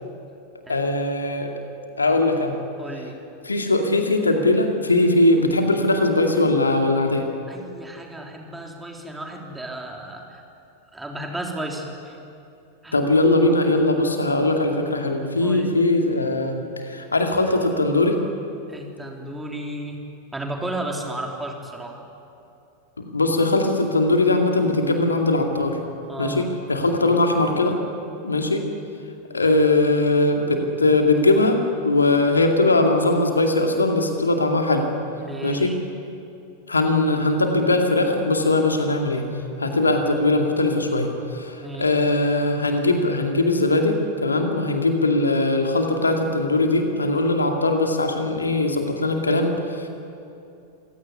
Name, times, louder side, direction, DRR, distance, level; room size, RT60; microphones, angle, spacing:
voice 1, 0.7-1.5 2.0-2.6 3.4-7.3 12.9-18.2 23.0-25.8 26.2-27.8 28.2-28.6 29.3-34.9 35.4-35.8 36.7-39.3 39.6-49.9, left 2 dB, 80° left, 4 dB, 2.4 m, -20 dB
voice 2, 2.8-3.2 7.5-10.4 10.9-12.2 12.8-13.0 15.4-15.8 18.7-20.0 20.3-22.0 26.1-26.5 35.1-35.8 41.6-41.9, right 1 dB, 10° right, 1 dB, 3.6 m, -33 dB
27.0 x 17.0 x 9.8 m, 2.7 s
figure-of-eight pair, 90°, 0 cm